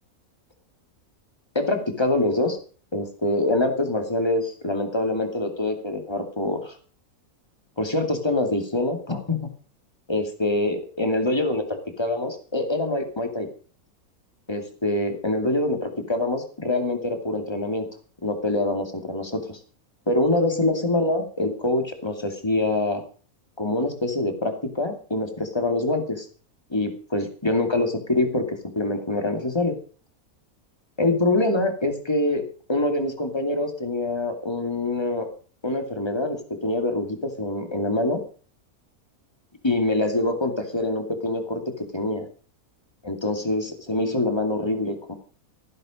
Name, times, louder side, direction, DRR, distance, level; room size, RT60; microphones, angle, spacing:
voice 1, 1.5-2.6 2.9-6.8 7.8-9.5 10.1-13.5 14.5-17.9 18.2-19.6 20.1-23.0 23.6-26.3 26.7-29.8 31.0-32.4 32.7-35.3 35.6-38.2 39.6-41.6 41.9-42.3 43.0-45.1, left 2 dB, 15° left, 6 dB, 2.7 m, -25 dB
15.5 x 10.5 x 5.2 m, 0.40 s
omnidirectional pair, 1.6 m